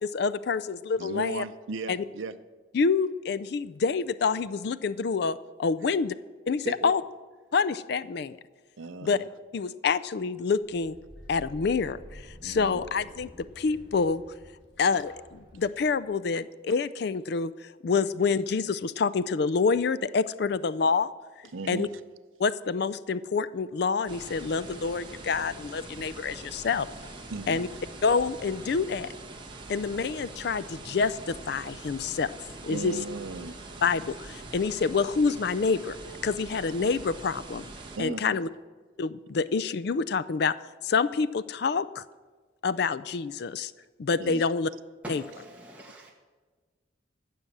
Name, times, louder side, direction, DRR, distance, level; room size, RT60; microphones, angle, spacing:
voice 1, 0.0-1.4 1.9-2.0 2.7-6.1 6.5-7.0 7.5-8.4 9.0-9.2 9.5-11.0 11.3-14.2 14.8-21.1 21.7-21.9 22.4-26.9 27.5-27.7 28.0-29.1 29.7-32.3 32.6-33.0 33.8-36.0 36.2-37.6 38.0-38.5 39.0-40.5 40.8-42.0 42.6-43.7 44.0-44.7 45.1-45.2, left 5 dB, 55° left, 16 dB, 0.4 m, -27 dB
voice 2, 1.0-2.3 6.6-6.9 8.8-9.2 12.4-12.8 21.5-21.9 27.3-27.7 32.7-33.6 38.0-38.4 44.2-44.5, right 4 dB, 85° right, 10 dB, 0.7 m, -36 dB
sound 1, 10.6-16.1, equal, 75° left, 4.3 m, -49 dB
sound 2, 24.1-38.0, right 2 dB, 25° right, 1.4 m, -44 dB
voice 3, 45.0-46.1, right 1 dB, 5° right, -3 dB, 1.6 m, -43 dB
15.0 x 6.2 x 8.0 m, 1.4 s
head